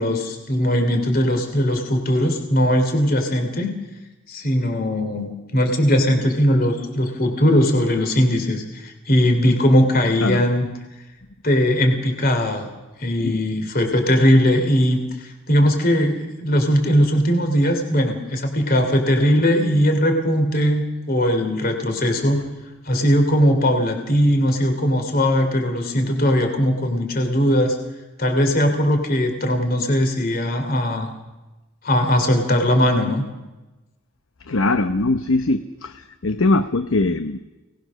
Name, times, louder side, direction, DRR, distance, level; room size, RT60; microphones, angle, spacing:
voice 1, 0.0-3.8 4.3-10.7 11.4-12.7 13.0-22.4 22.9-27.8 28.2-31.1 31.8-33.2, equal, 45° left, 5 dB, 3.1 m, -19 dB
voice 2, 34.5-37.4, left 2 dB, 70° left, 9 dB, 0.9 m, -21 dB
27.5 x 19.5 x 6.4 m, 1.1 s
head